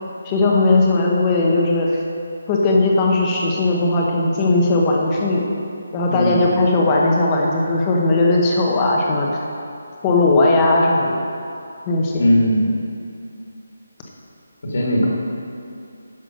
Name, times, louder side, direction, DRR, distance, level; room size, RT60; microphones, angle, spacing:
voice 1, 0.2-1.9 2.5-5.5 5.9-9.4 10.0-11.2 11.9-12.2, left 2 dB, 15° left, -2 dB, 0.9 m, -17 dB
voice 2, 6.1-6.5 12.2-12.7 14.6-15.1, equal, 50° left, -3 dB, 1.9 m, -18 dB
10.5 x 6.0 x 6.2 m, 2.6 s
hypercardioid pair, 175°, 0 cm